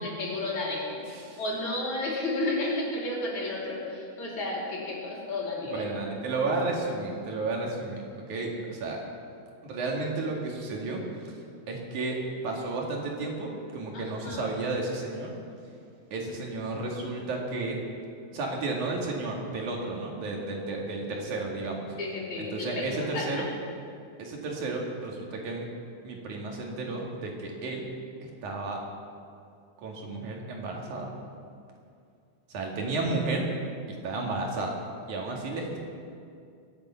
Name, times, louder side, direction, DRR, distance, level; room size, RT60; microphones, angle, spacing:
voice 1, 0.0-1.0 1.4-5.9 13.9-14.5 22.0-23.4, left 2 dB, 70° left, -4 dB, 4.8 m, -32 dB
voice 2, 1.0-1.4 5.7-9.0 9.6-11.3 11.7-12.2 12.4-15.3 16.1-17.8 18.3-21.9 22.4-23.5 24.2-25.7 26.0-27.9 28.2-28.8 29.8-31.1 32.5-33.5 34.0-34.7 35.1-35.8, right 3 dB, 80° right, -1 dB, 3.5 m, -32 dB
23.5 x 8.7 x 5.7 m, 2.4 s
omnidirectional pair, 3.4 m